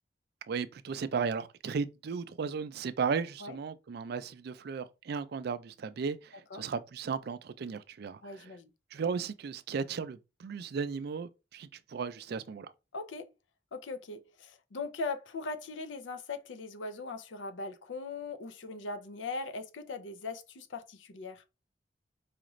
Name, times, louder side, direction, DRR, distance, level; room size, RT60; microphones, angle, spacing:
voice 1, 0.5-8.5 8.9-12.7, right 5 dB, 60° right, 0.4 m, -35 dB
voice 2, 8.2-8.7 12.9-13.3 13.7-21.4, left 3 dB, 85° left, 0.5 m, -40 dB
4.9 x 2.5 x 3.0 m
head